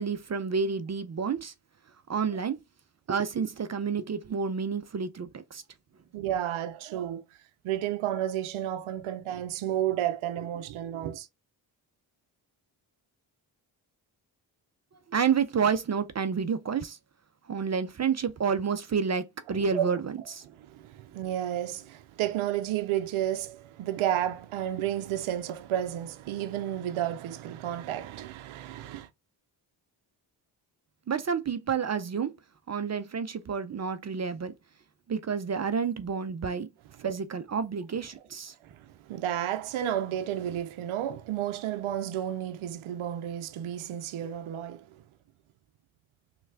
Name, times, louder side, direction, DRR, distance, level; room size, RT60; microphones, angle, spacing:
voice 1, 0.0-1.5 2.1-2.6 3.1-5.6 15.1-17.0 17.5-20.4 31.1-32.3 32.7-34.5 35.1-36.7 37.0-38.5, right 6 dB, 35° right, 0.5 m, -29 dB
voice 2, 6.1-7.2 7.6-11.3 19.5-20.0 20.6-29.1 37.0-37.2 38.6-38.8 39.1-44.9, right 11 dB, 75° right, 0.6 m, -32 dB
3.1 x 2.4 x 3.3 m
supercardioid pair, 40°, 49 cm